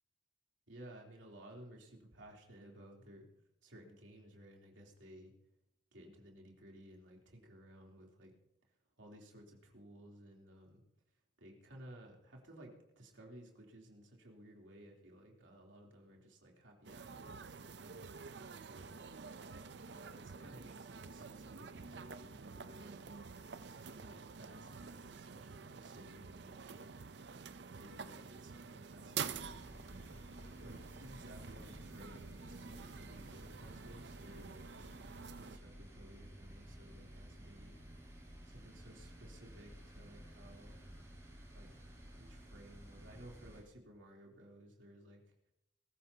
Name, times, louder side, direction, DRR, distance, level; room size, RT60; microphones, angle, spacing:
voice 1, 0.7-3.2 3.6-5.3 5.9-8.3 9.0-10.8 11.4-18.4 18.6-19.1 19.9-23.0 23.7-27.0 27.7-29.8 30.6-34.8 35.4-37.8 38.1-38.2 38.5-40.8 41.5-41.7 42.2-45.2, right 1 dB, 85° right, 0 dB, 3.2 m, -57 dB
sound 1, 16.8-35.6, right 6 dB, 65° right, 0.6 m, -49 dB
sound 2, 29.3-43.6, equal, 15° right, 6.5 m, -54 dB
21.0 x 14.5 x 2.8 m, 0.83 s
head